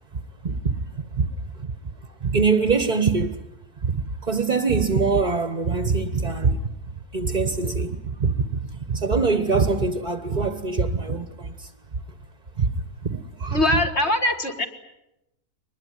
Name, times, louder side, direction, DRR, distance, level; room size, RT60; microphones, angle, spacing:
voice 1, 0.4-0.8 1.1-1.3 1.6-1.7 2.2-3.4 3.8-6.6 7.1-8.6 8.9-11.7 12.6-12.7 13.0-13.6, right 4 dB, 30° right, 1.2 m, -23 dB
voice 2, 13.5-14.7, left 1 dB, 40° left, 2.3 m, -22 dB
24.0 x 20.5 x 9.7 m
omnidirectional pair, 1.7 m